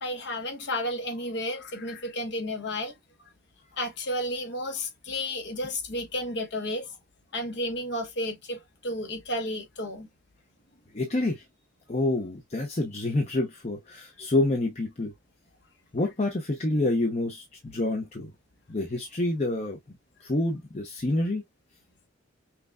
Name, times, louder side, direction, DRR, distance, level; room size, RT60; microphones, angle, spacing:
voice 1, 0.0-2.9 3.2-3.3 3.8-6.9 7.3-10.1, left 1 dB, 60° left, 1.1 m, -32 dB
voice 2, 10.9-11.4 11.9-15.1 15.9-18.3 18.7-19.8 20.2-21.4, left 2 dB, 35° left, 0.7 m, -27 dB
5.8 x 2.3 x 2.4 m
head